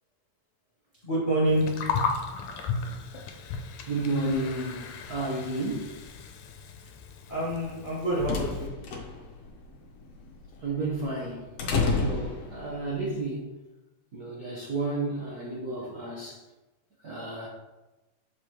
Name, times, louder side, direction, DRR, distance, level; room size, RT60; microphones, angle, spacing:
voice 1, 1.0-1.7 7.3-8.7, right 1 dB, 50° left, -7 dB, 0.5 m, -27 dB
Gurgling, 1.5-8.7, left 5 dB, 85° left, 2.0 m, -35 dB
voice 2, 3.9-5.9 10.6-11.5 12.0-13.5 14.1-16.4 17.0-17.5, right 2 dB, 65° right, -6 dB, 0.9 m, -32 dB
sound 1, 7.8-13.0, left 4 dB, 65° left, 1.8 m, -31 dB
6.6 x 5.0 x 3.1 m, 1.1 s
omnidirectional pair, 3.3 m